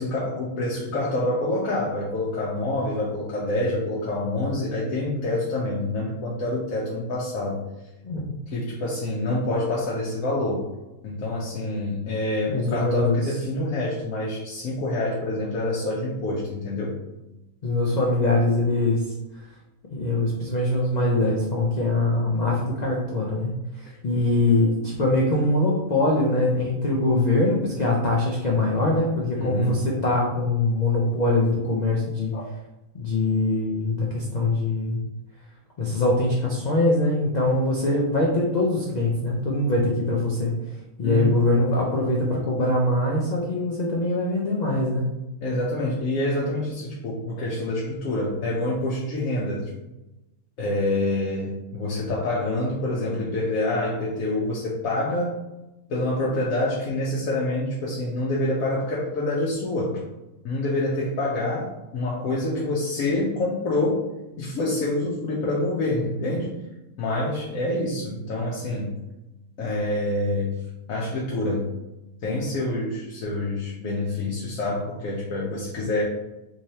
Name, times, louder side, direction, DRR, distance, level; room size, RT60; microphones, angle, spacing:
voice 1, 0.0-7.7 8.5-10.7 11.0-17.0 29.4-29.7 32.3-32.4 41.0-41.4 45.4-49.7 50.6-55.4 55.9-60.0 60.4-64.1 64.4-66.6 67.0-69.0 69.6-70.6 70.9-71.8 72.2-76.0, left 2 dB, 70° left, -5 dB, 1.1 m, -27 dB
voice 2, 8.0-8.4 12.5-13.2 17.6-19.1 19.3-19.4 19.9-32.3 32.9-35.0 35.8-40.5 41.0-45.1, left 2 dB, 85° left, -3 dB, 0.3 m, -23 dB
3.6 x 3.2 x 2.8 m, 0.98 s
omnidirectional pair, 1.6 m